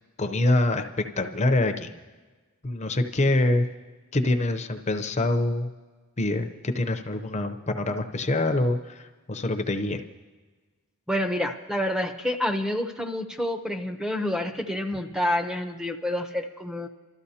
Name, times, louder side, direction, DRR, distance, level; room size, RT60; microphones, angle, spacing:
voice 1, 0.2-1.9 2.6-3.7 4.1-5.7 6.2-10.0, left 2 dB, 30° left, 7 dB, 0.7 m, -25 dB
voice 2, 11.1-16.9, left 1 dB, 5° right, 5 dB, 0.7 m, -28 dB
28.5 x 13.0 x 2.8 m, 1.3 s
head